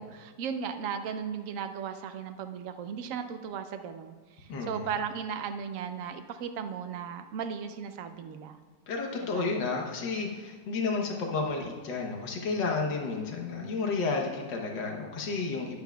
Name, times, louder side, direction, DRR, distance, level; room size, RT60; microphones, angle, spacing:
voice 1, 0.0-8.6 9.3-9.5, right 7 dB, 70° right, 8 dB, 0.8 m, -36 dB
voice 2, 4.5-4.9 8.9-15.8, left 4 dB, 85° left, 0 dB, 1.7 m, -31 dB
12.0 x 11.5 x 2.3 m, 1.4 s
omnidirectional pair, 1.9 m